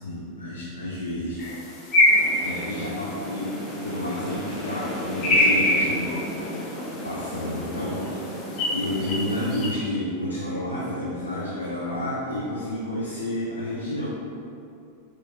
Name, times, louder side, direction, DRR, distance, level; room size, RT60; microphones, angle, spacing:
voice 1, 0.0-1.5 2.4-3.5 3.8-6.7 7.0-8.4 8.7-14.1, left 1 dB, 80° left, -6 dB, 0.6 m, -30 dB
sound 1, 1.4-9.7, left 1 dB, 35° left, 0.9 m, -26 dB
sound 2, 2.1-9.5, equal, ahead, 0.8 m, -35 dB
6.0 x 3.1 x 2.8 m, 2.5 s
figure-of-eight pair, 90°, 0 cm